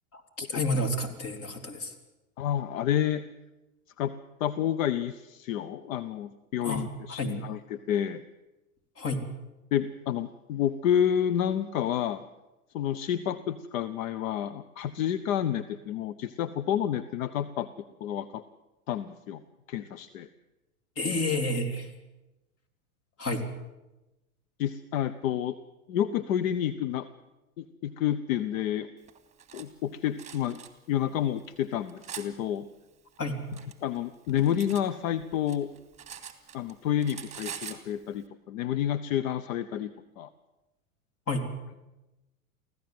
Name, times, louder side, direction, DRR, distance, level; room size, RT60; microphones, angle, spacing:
voice 1, 0.1-1.9 6.6-7.3 9.0-9.2 21.0-21.9 23.2-23.4 33.2-33.4 41.3-41.5, left 1 dB, 30° left, 7 dB, 3.4 m, -30 dB
voice 2, 2.4-3.2 4.0-4.1 4.4-8.2 9.7-12.2 12.7-17.7 18.0-18.4 18.9-19.4 19.7-20.3 24.6-25.6 25.9-27.1 27.6-28.9 29.5-30.6 30.9-32.6 33.8-35.7 36.5-40.3, left 10 dB, 60° left, 13 dB, 1.0 m, -29 dB
Cutlery silverware, 29.1-29.7 30.2-30.7 31.4-32.3 33.2-34.9 35.2-36.7 37.0-37.8, right 8 dB, 15° right, 2.5 m, -43 dB
24.0 x 16.0 x 7.8 m, 1.0 s
hypercardioid pair, 100°, 44 cm